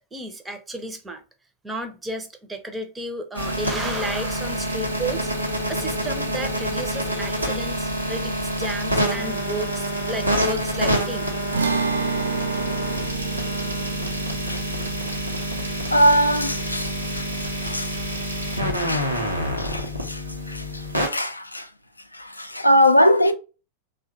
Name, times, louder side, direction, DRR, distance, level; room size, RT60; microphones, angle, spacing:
voice 1, 0.1-1.2 1.6-11.3, right 1 dB, 10° right, 0.6 m, -33 dB
sound 1, 3.3-21.1, equal, 90° right, 0.8 m, -27 dB
sound 2, 11.5-18.0, right 5 dB, 70° right, 0.4 m, -31 dB
voice 2, 15.9-17.3 17.6-17.9 18.7-19.1 19.6-20.6 21.0-21.7 22.1-23.3, equal, 85° left, 0.3 m, -21 dB
3.4 x 2.2 x 2.7 m
figure-of-eight pair, 90°, 0 cm